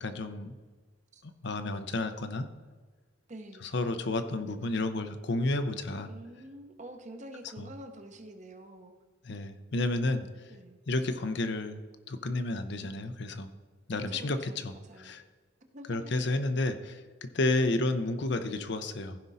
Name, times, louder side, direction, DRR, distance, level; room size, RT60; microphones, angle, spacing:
voice 1, 0.0-0.5 1.2-2.5 3.6-6.1 7.6-7.7 9.2-10.5 10.9-11.8 12.1-13.5 13.9-15.2 15.9-19.2, left 2 dB, 65° left, 9 dB, 0.7 m, -31 dB
voice 2, 3.3-3.7 6.1-8.9 10.5-10.8 13.9-15.1 15.6-16.1 17.6-17.9, right 1 dB, 40° right, 6 dB, 1.0 m, -47 dB
15.0 x 5.2 x 4.1 m, 1.4 s
head